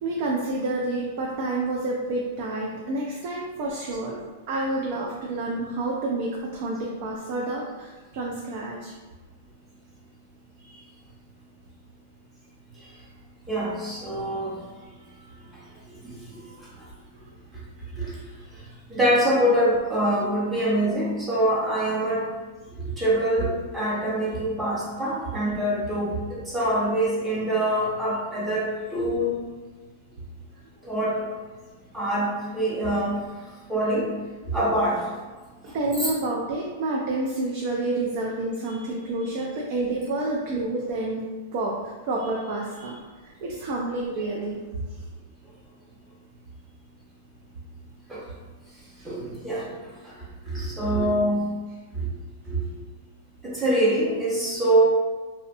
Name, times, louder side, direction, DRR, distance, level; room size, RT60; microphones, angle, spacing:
voice 1, 0.0-4.2 4.5-8.9 10.6-10.8 12.7-12.9 35.6-44.9 49.0-49.1, right 2 dB, 45° right, -2 dB, 0.3 m, -29 dB
voice 2, 13.5-14.6 16.0-16.2 18.0-18.2 18.9-22.2 22.8-28.6 28.9-29.4 30.8-31.1 31.9-33.2 33.7-34.1 34.5-35.1 35.8-36.1 48.1-48.2 49.0-49.7 50.4-51.4 52.0-52.1 52.5-52.6 53.4-54.9, right 1 dB, 10° right, -7 dB, 0.7 m, -24 dB
2.6 x 2.1 x 2.5 m, 1.3 s
supercardioid pair, 155°, 0 cm